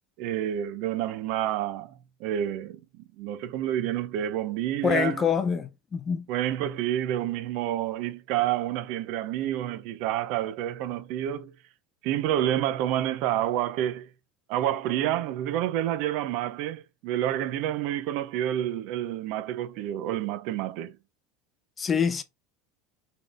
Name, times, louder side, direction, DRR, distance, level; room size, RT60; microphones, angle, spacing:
voice 1, 0.2-1.9 2.2-2.8 3.2-5.3 6.3-11.5 12.0-14.1 14.5-21.0, right 12 dB, 55° right, 0.5 m, -29 dB
voice 2, 4.8-6.3 21.8-22.2, left 7 dB, 20° left, 0.5 m, -25 dB
4.1 x 3.7 x 3.3 m
supercardioid pair, 165°, 0 cm